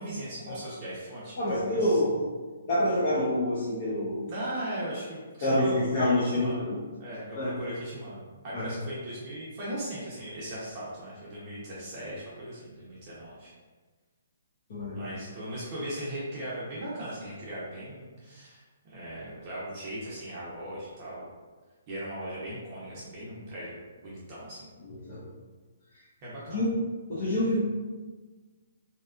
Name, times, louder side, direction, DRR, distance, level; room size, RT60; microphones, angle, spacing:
voice 1, 0.0-2.0 4.3-6.7 7.0-13.5 14.9-21.3 21.9-24.7 26.2-26.6, right 1 dB, 35° right, -8 dB, 0.7 m, -38 dB
voice 2, 1.4-2.2 2.6-4.3 5.4-6.8 7.3-7.5 8.5-8.6 14.7-15.1 25.1-25.2 26.5-26.7 27.1-27.6, left 1 dB, 40° left, -10 dB, 0.7 m, -27 dB
2.8 x 2.3 x 2.3 m, 1.4 s
hypercardioid pair, 160°, 0 cm